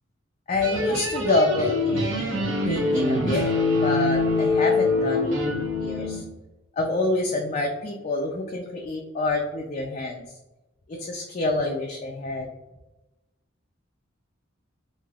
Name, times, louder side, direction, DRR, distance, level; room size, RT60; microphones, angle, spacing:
voice 1, 0.5-6.2 6.7-10.2 10.9-12.5, left 2 dB, 35° left, 0 dB, 0.3 m, -27 dB
sound 1, 0.6-6.2, left 2 dB, 70° right, 0.9 m, -24 dB
3.3 x 2.7 x 2.3 m, 1.0 s
head